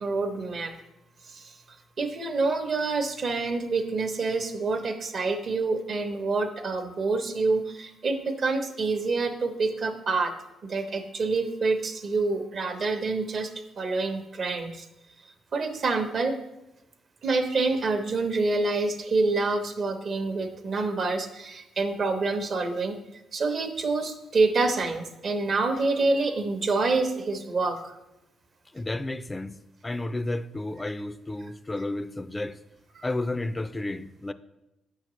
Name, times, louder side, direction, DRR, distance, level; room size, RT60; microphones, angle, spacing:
voice 1, 0.0-0.7 1.3-1.4 2.0-10.3 10.6-13.5 13.8-14.8 15.5-16.4 17.2-23.0 23.3-27.9 33.0-33.1, right 3 dB, 50° right, 0.8 m, -27 dB
voice 2, 28.7-29.6 29.8-32.6 33.0-34.3, left 2 dB, 20° left, 0.3 m, -32 dB
7.4 x 5.7 x 3.1 m
cardioid pair, 90°, 0 cm